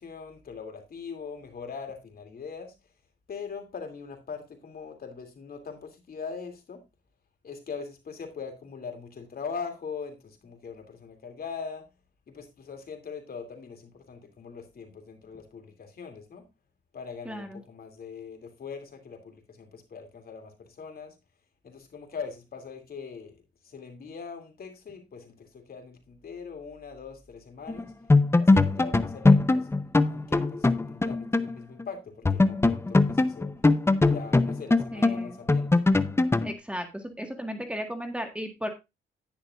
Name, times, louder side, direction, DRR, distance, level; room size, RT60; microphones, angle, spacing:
voice 1, 0.0-2.7 3.3-6.8 7.4-11.8 12.3-16.5 16.9-21.1 21.6-23.3 23.6-27.9 28.4-29.7 30.1-33.5 34.0-35.8, left 5 dB, 50° left, 5 dB, 2.8 m, -41 dB
voice 2, 17.2-17.6 34.9-35.4 36.4-38.7, equal, 5° right, 5 dB, 1.6 m, -35 dB
sound 1, 27.7-27.8 28.1-31.5 31.8-31.9 32.3-36.5, left 3 dB, 10° left, 0.7 m, -21 dB
10.5 x 10.5 x 2.5 m, 0.24 s
cardioid pair, 90°, 20 cm